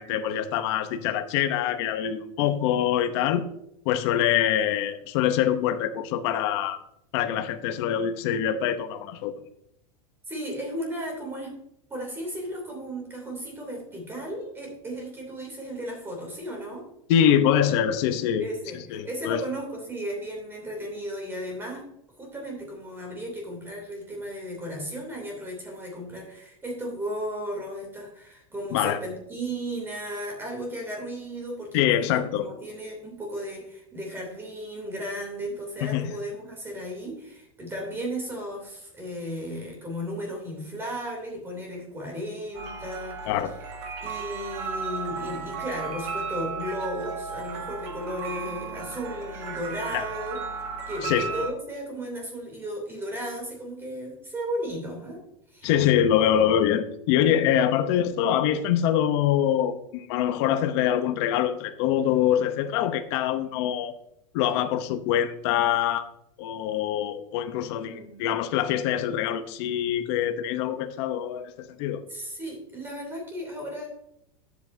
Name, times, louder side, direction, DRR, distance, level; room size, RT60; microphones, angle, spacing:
voice 1, 0.0-3.5 3.8-6.8 7.1-9.3 17.1-18.5 18.7-19.4 28.7-29.0 31.7-32.5 35.8-36.1 43.3-43.5 49.9-50.0 51.0-51.2 55.6-63.9 64.3-66.1 66.4-72.0, left 10 dB, 50° left, 8 dB, 0.7 m, -24 dB
voice 2, 10.3-11.5 11.9-16.8 18.4-21.8 22.2-43.2 44.0-50.4 50.9-55.2 55.5-55.7 67.8-68.1 72.1-73.9, equal, 15° right, 1 dB, 2.8 m, -35 dB
sound 1, 42.5-51.5, right 5 dB, 55° right, 1.6 m, -34 dB
11.0 x 8.2 x 2.6 m, 0.77 s
supercardioid pair, 160°, 17 cm